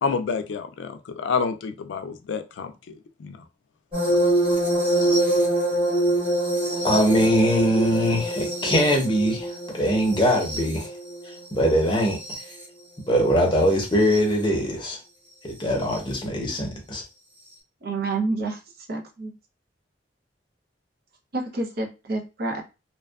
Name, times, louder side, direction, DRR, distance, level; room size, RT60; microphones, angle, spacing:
voice 1, 0.0-2.7 3.2-3.4, left 5 dB, 85° left, 8 dB, 0.4 m, -28 dB
sound 1, 3.9-12.6 13.9-14.2 15.9-16.0, right 1 dB, 30° right, 1.3 m, -25 dB
voice 2, 6.8-9.5 9.7-10.9 11.5-12.2 13.1-15.0 15.4-17.0, equal, 25° left, 1 dB, 0.7 m, -21 dB
voice 3, 17.8-18.6 18.9-19.3 21.3-22.6, right 3 dB, 60° right, 1 dB, 0.6 m, -28 dB
2.6 x 2.2 x 2.3 m, 0.29 s
head